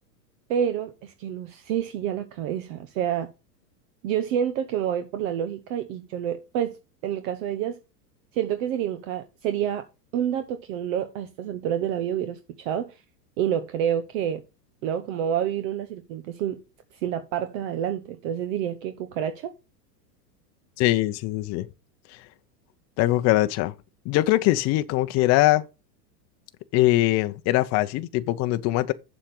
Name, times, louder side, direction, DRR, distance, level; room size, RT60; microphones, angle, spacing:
voice 1, 0.5-3.3 4.0-6.8 7.0-7.8 8.3-9.8 10.1-12.9 13.4-14.4 14.8-16.6 17.0-19.5, right 9 dB, 55° right, 1.1 m, -28 dB
voice 2, 20.8-21.7 23.0-23.7 24.1-25.7 26.7-28.9, left 17 dB, 35° left, 0.6 m, -22 dB
7.3 x 6.4 x 5.3 m
hypercardioid pair, 120°, 49 cm